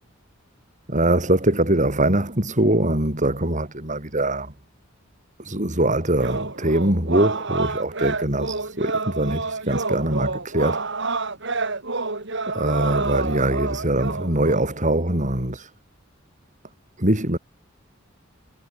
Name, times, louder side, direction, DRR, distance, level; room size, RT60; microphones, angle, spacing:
voice 1, 0.9-4.5 5.4-10.8 12.5-15.7 17.0-17.4, right 1 dB, 35° right, 5.9 m, -22 dB
sound 1, 6.2-14.7, right 3 dB, 60° right, 4.4 m, -28 dB
head